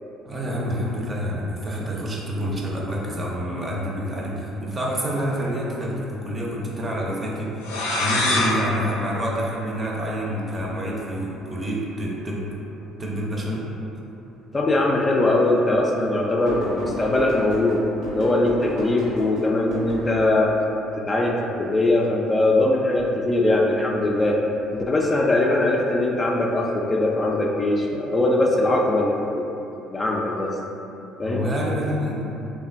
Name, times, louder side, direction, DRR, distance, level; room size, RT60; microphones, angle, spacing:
voice 1, 0.3-7.6 8.0-12.5 13.0-13.7 31.2-32.2, equal, 30° right, -3 dB, 0.6 m, -27 dB
sound 1, 7.6-10.2, left 2 dB, 90° left, 0.5 m, -26 dB
voice 2, 14.5-17.8 18.1-20.5 20.9-24.4 24.7-29.4 29.8-30.5 31.2-31.4, left 2 dB, 30° left, -1 dB, 0.3 m, -21 dB
sound 2, 16.5-20.4 23.9-24.3 25.4-25.5, equal, 75° right, 1.0 m, -34 dB
3.2 x 2.2 x 2.5 m, 2.8 s
hypercardioid pair, 65°, 0 cm